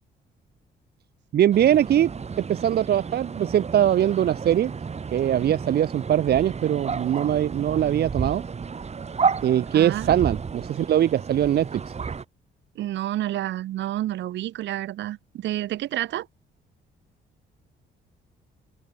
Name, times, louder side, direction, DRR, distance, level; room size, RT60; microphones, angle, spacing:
voice 1, 1.3-2.1 2.4-4.7 5.1-8.4 9.4-11.7, right 11 dB, 60° right, 0.9 m, -21 dB
sound 1, 1.5-12.2, right 5 dB, 35° right, 3.2 m, -32 dB
voice 2, 9.7-10.1 12.7-16.3, right 13 dB, 80° right, 1.6 m, -29 dB
cardioid pair, 95°, 18 cm